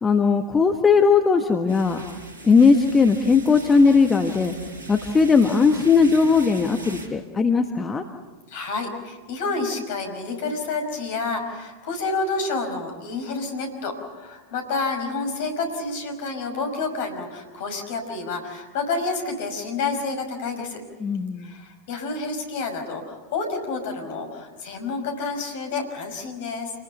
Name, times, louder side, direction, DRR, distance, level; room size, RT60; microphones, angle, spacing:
voice 1, 0.0-2.0 2.4-4.5 4.9-8.0 21.0-21.6, left 5 dB, 15° left, 5 dB, 1.4 m, -18 dB
sound 1, 1.7-7.1, right 2 dB, 65° right, 5.4 m, -39 dB
voice 2, 8.5-20.8 21.4-26.7, left 3 dB, 50° left, 4 dB, 5.6 m, -29 dB
28.0 x 20.5 x 6.9 m, 1.3 s
figure-of-eight pair, 90°, 0 cm